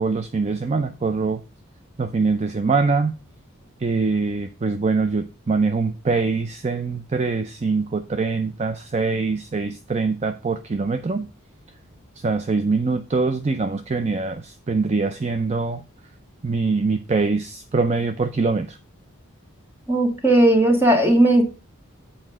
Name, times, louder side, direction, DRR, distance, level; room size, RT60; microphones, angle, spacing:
voice 1, 0.0-1.4 2.0-3.1 3.8-11.3 12.2-15.8 16.4-18.8, right 4 dB, 30° right, 0.5 m, -23 dB
voice 2, 19.9-21.4, right 1 dB, 10° right, 1.9 m, -16 dB
7.7 x 4.3 x 6.1 m
head